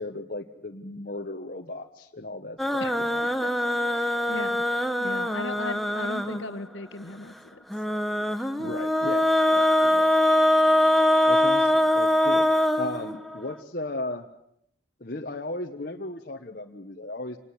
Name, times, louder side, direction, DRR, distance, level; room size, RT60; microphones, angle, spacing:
voice 1, 0.0-3.2 8.6-10.1 10.7-10.9 11.2-12.5 12.8-14.2 15.0-17.4, left 2 dB, 50° left, 1 dB, 1.4 m, -36 dB
sound 1, 2.6-6.6 7.7-13.5, left 1 dB, ahead, 1.1 m, -23 dB
voice 2, 3.9-4.6 5.0-7.6 8.6-8.8 9.5-10.0, left 2 dB, 80° left, 11 dB, 1.6 m, -38 dB
27.5 x 20.5 x 7.9 m, 0.73 s
head